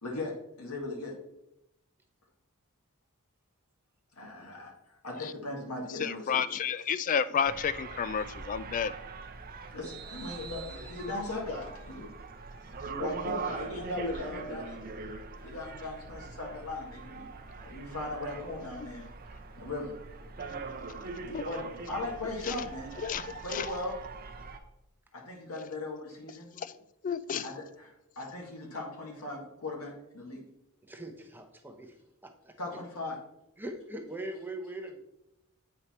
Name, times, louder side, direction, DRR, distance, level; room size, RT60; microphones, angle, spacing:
voice 1, 0.0-1.1 4.2-6.4 9.7-12.1 13.0-14.8 15.4-17.3 17.7-19.1 19.5-19.9 21.4-23.0 23.2-24.0 25.1-26.5 27.4-30.4 32.6-33.2, left 2 dB, 75° left, -1 dB, 1.9 m, -38 dB
voice 2, 6.0-8.9 21.3-21.4 22.4-22.6 23.0-23.7 26.6-26.7 27.0-27.5, left 7 dB, 35° left, 15 dB, 0.3 m, -31 dB
sound 1, 7.4-24.6, right 4 dB, 40° right, 0.7 m, -42 dB
voice 3, 30.8-32.0 32.2-32.6 33.6-35.0, right 1 dB, 10° right, 4 dB, 0.8 m, -41 dB
8.3 x 4.8 x 4.3 m, 0.86 s
head